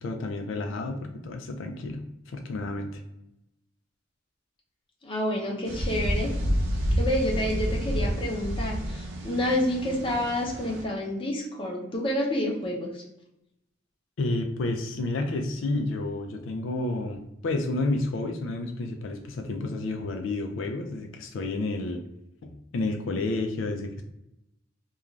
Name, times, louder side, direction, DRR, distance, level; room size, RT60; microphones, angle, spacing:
voice 1, 0.0-3.0 14.2-22.0 22.4-24.0, left 2 dB, 80° left, 4 dB, 0.4 m, -30 dB
voice 2, 5.0-6.3 7.0-13.0, left 1 dB, 25° left, -2 dB, 0.6 m, -29 dB
sound 1, 5.7-10.8, equal, 75° right, 0.5 m, -29 dB
2.4 x 2.3 x 3.0 m, 0.84 s
head